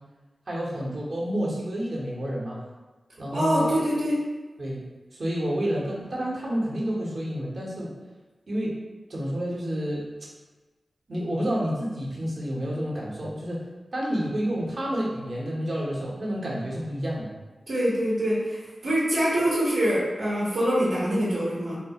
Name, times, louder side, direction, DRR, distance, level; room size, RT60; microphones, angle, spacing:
voice 1, 0.5-2.6 3.2-3.7 4.6-4.8 5.1-7.9 8.5-8.8 9.1-10.1 11.1-13.7 13.9-17.3, equal, 60° right, -4 dB, 0.9 m, -29 dB
voice 2, 3.3-4.2 17.7-21.8, equal, 85° right, -9 dB, 1.0 m, -24 dB
3.6 x 2.3 x 2.8 m, 1.2 s
wide cardioid pair, 70°, 0 cm